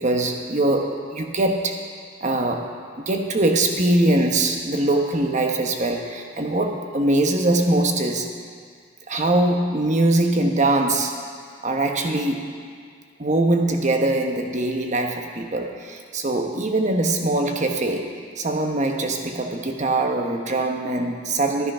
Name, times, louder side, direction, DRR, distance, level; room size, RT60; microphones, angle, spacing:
voice 1, 0.0-1.8 2.2-2.7 3.1-8.3 9.1-11.2 11.6-12.5 13.2-18.1 18.4-21.7, right 2 dB, 40° right, 3 dB, 1.1 m, -22 dB
12.5 x 9.7 x 5.6 m, 2.1 s
head